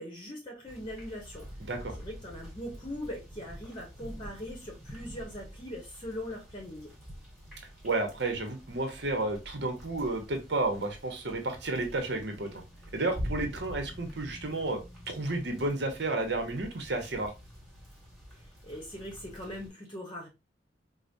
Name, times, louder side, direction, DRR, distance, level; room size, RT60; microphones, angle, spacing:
voice 1, 0.0-1.5 2.0-6.9 18.3-20.3, left 1 dB, 25° left, -2 dB, 0.8 m, -41 dB
sound 1, 0.7-19.7, equal, ahead, 1.5 m, -46 dB
voice 2, 1.6-2.0 7.8-12.5 12.9-14.8 15.1-17.3, right 2 dB, 65° right, 5 dB, 0.9 m, -31 dB
4.8 x 2.1 x 2.6 m, 0.25 s
head